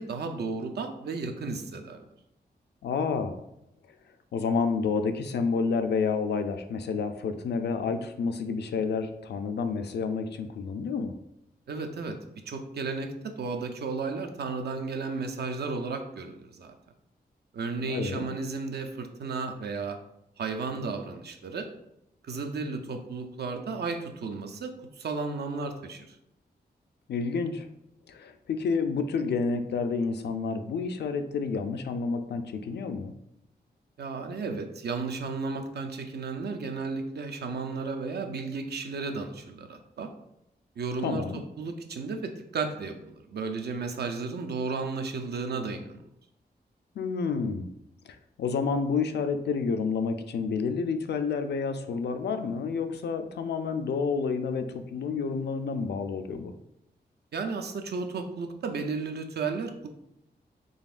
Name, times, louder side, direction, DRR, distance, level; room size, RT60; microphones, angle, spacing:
voice 1, 0.0-2.0 11.7-12.2 12.5-16.7 17.5-20.0 20.4-21.7 22.2-26.2 34.0-40.1 40.8-46.0 57.3-59.9, right 4 dB, 75° right, 5 dB, 0.5 m, -34 dB
voice 2, 2.8-3.4 4.3-11.1 17.8-18.3 27.1-27.7 28.1-33.1 41.0-41.4 47.0-47.7 48.1-56.5, left 5 dB, 80° left, 8 dB, 0.4 m, -29 dB
3.9 x 3.5 x 2.4 m, 0.81 s
wide cardioid pair, 115°, 17 cm